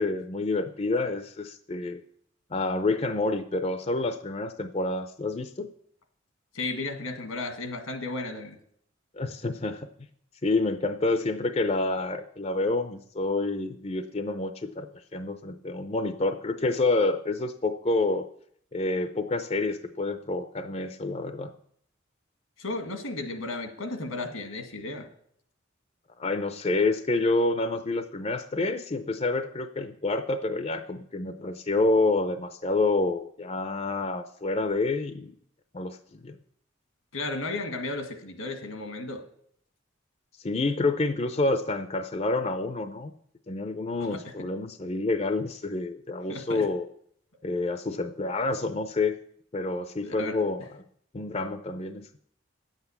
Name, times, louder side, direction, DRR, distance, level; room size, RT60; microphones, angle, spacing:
voice 1, 0.0-2.0 2.5-5.7 9.2-9.9 10.4-18.3 18.7-21.5 26.2-35.3 35.7-36.0 36.2-36.3 40.4-43.1 43.5-46.9 47.4-49.2 49.5-50.6 51.1-52.1, left 2 dB, 30° left, 9 dB, 0.5 m, -28 dB
voice 2, 6.5-8.6 22.6-25.1 37.1-39.2 44.0-44.2 46.3-46.7 50.0-50.4, left 2 dB, 90° left, 6 dB, 1.9 m, -34 dB
10.0 x 8.1 x 7.1 m, 0.67 s
head